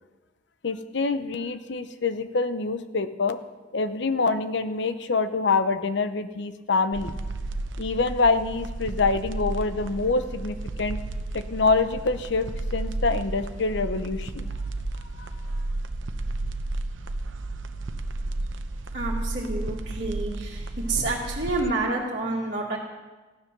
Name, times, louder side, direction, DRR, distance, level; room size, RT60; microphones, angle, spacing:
voice 1, 0.6-3.4 3.7-7.2 7.8-11.0 11.3-14.5 15.2-15.3, left 4 dB, 65° left, 11 dB, 0.7 m, -26 dB
sound 1, 6.9-21.7, right 2 dB, 85° right, 0.8 m, -32 dB
voice 2, 18.9-20.6 20.9-22.8, right 2 dB, 55° right, -7 dB, 2.1 m, -28 dB
15.0 x 9.8 x 6.1 m, 1.2 s
head